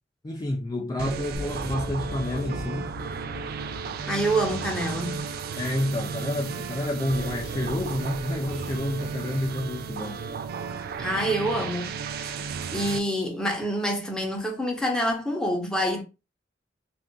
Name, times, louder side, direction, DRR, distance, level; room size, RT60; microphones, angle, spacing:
voice 1, 0.2-2.9 5.6-10.2 12.3-12.5, left 1 dB, 20° left, 0.3 m, -29 dB
sound 1, 1.0-13.0, right 5 dB, 55° right, 0.3 m, -34 dB
sound 2, 1.3-6.7, left 2 dB, 65° left, 0.8 m, -41 dB
voice 2, 4.0-5.2 11.0-16.0, right 1 dB, 5° left, 0.8 m, -27 dB
2.5 x 2.4 x 3.7 m
head